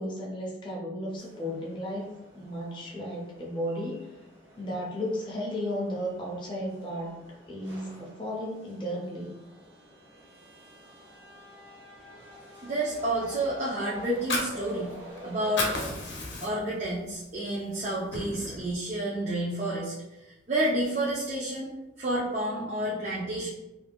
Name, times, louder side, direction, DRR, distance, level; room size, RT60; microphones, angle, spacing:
voice 1, 0.0-2.1 2.3-4.1 4.6-7.2 7.5-9.3, equal, 25° left, -5 dB, 0.6 m, -34 dB
sound 1, 1.2-15.9, right 1 dB, 65° right, 0.9 m, -48 dB
voice 2, 12.6-14.9 15.2-15.7 16.4-19.9 20.2-21.7 22.0-23.5, right 1 dB, 35° right, -6 dB, 0.4 m, -30 dB
Fire, 14.0-15.2 15.4-16.8 17.2-17.4 17.7-18.7, left 2 dB, 65° left, 0.6 m, -32 dB
2.4 x 2.2 x 3.3 m, 1.0 s
head